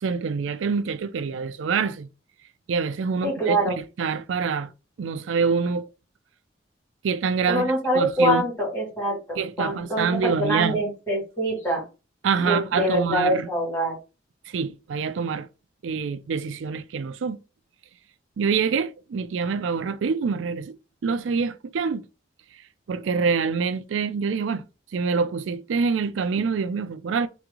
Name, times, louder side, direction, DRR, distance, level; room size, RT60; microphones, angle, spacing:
voice 1, 0.0-2.1 2.7-4.7 5.0-5.9 7.0-8.5 9.4-10.8 12.2-13.5 14.5-15.5 15.8-17.4 18.4-20.8 21.0-22.1 22.9-24.6 24.9-27.3, right 5 dB, 90° right, 0.4 m, -26 dB
voice 2, 3.2-3.7 7.5-11.8 12.4-13.9, right 1 dB, 15° left, 2.4 m, -24 dB
3.4 x 3.1 x 3.7 m
head